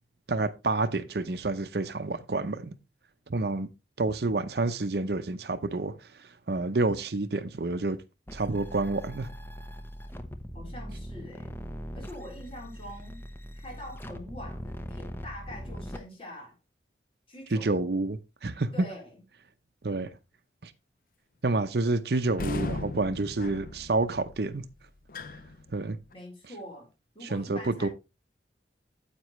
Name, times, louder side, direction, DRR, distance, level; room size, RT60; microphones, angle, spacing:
voice 1, 0.3-2.7 3.3-3.7 4.0-8.0 8.3-9.3 17.5-18.7 19.8-20.1 20.6-20.7 21.4-24.7 25.7-26.0 27.2-27.9, right 3 dB, 65° right, 0.7 m, -29 dB
sound 1, 8.3-16.0, equal, 10° left, 0.8 m, -41 dB
voice 2, 10.5-11.5 11.9-13.2 13.5-16.6 17.3-17.9 18.7-19.2 26.1-26.9 27.1-27.9, left 1 dB, 30° left, 4.0 m, -44 dB
sound 2, 22.3-26.1, left 2 dB, 50° left, 0.5 m, -37 dB
9.6 x 8.3 x 3.1 m
head